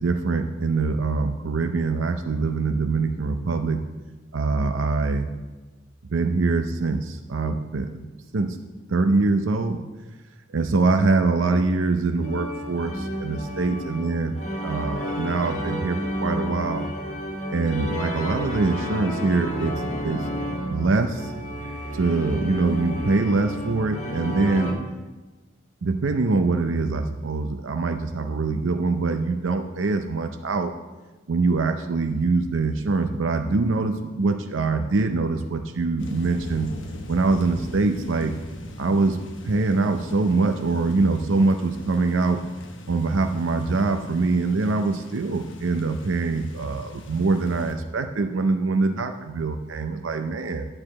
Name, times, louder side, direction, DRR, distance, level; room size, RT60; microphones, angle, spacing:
voice 1, 0.0-3.8 4.3-5.3 6.1-8.6 8.9-9.8 10.5-14.4 14.6-16.9 17.5-20.3 20.7-21.3 21.9-24.7 25.8-30.7 31.3-36.7 37.1-38.4 38.8-42.4 42.9-50.7, right 3 dB, 80° right, 6 dB, 0.6 m, -24 dB
sound 1, 12.2-24.7, equal, 35° left, 1.5 m, -31 dB
sound 2, 36.0-47.7, left 1 dB, 75° left, 1.0 m, -40 dB
9.6 x 4.9 x 7.3 m, 1.2 s
head